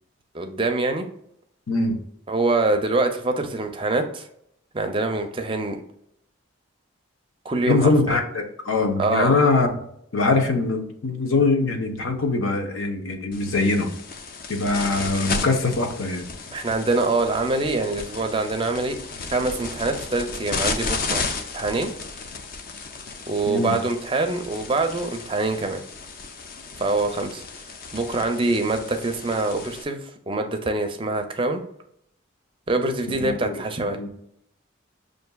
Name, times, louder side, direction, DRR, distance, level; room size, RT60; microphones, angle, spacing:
voice 1, 0.3-1.1 2.3-4.3 4.7-5.8 7.4-7.9 9.0-9.4 16.5-19.0 19.3-21.2 21.5-21.9 23.3-25.8 26.8-27.4 27.9-31.6 32.7-34.0, right 2 dB, 25° right, 6 dB, 0.4 m, -24 dB
voice 2, 1.7-2.0 7.7-9.8 10.1-13.9 14.5-16.3 23.5-23.8 33.2-33.6 33.9-34.1, left 3 dB, 85° left, 4 dB, 0.8 m, -22 dB
sound 1, 13.3-29.8, left 4 dB, 45° left, 0.4 m, -34 dB
6.5 x 2.5 x 2.2 m, 0.73 s
head